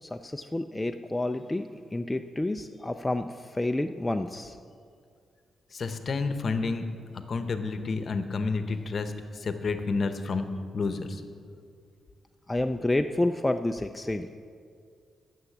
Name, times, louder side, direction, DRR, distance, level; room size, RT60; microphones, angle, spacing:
voice 1, 0.0-4.6 12.5-14.3, left 1 dB, 10° left, 6 dB, 0.3 m, -29 dB
voice 2, 5.7-6.9 7.1-10.5 10.7-11.2, left 4 dB, 45° left, 9 dB, 0.8 m, -30 dB
9.8 x 7.0 x 7.2 m, 2.2 s
cardioid pair, 105°, 0 cm